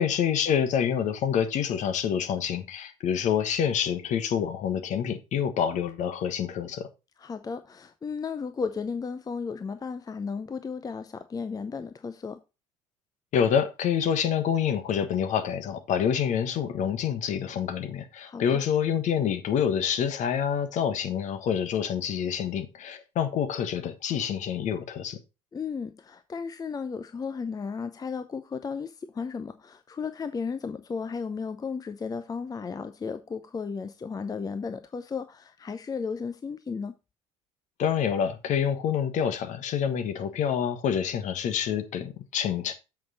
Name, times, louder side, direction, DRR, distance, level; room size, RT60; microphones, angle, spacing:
voice 1, 0.0-6.9 13.3-25.2 37.8-42.7, left 8 dB, 50° left, 1.3 m, -27 dB
voice 2, 7.2-12.4 18.2-18.7 25.5-36.9, left 5 dB, 25° left, 0.7 m, -34 dB
7.6 x 5.9 x 4.1 m
figure-of-eight pair, 60°, 16 cm